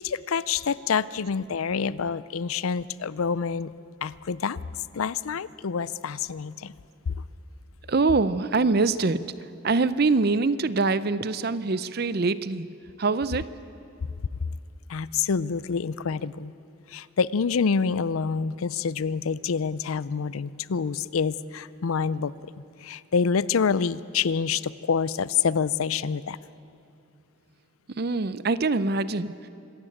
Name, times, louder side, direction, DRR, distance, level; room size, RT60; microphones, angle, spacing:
voice 1, 0.0-3.7 4.0-4.6 4.9-6.7 7.1-7.2 14.9-16.5 16.9-22.3 22.8-26.4, left 6 dB, 90° left, 18 dB, 0.5 m, -27 dB
voice 2, 7.9-12.7 13.0-13.5 27.9-29.5, right 3 dB, 50° right, 15 dB, 0.6 m, -24 dB
25.5 x 13.5 x 8.7 m, 2.6 s
head